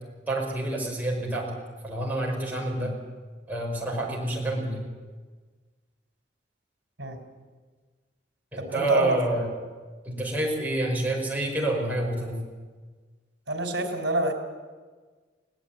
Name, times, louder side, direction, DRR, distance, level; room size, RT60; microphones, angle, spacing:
voice 1, 0.3-1.5 1.8-2.9 3.5-4.9 8.5-9.5 10.1-12.4, right 2 dB, 10° right, -2 dB, 5.6 m, -28 dB
voice 2, 8.6-9.2 13.5-14.3, right 1 dB, 65° right, 5 dB, 3.7 m, -27 dB
21.5 x 18.0 x 8.9 m, 1.4 s
head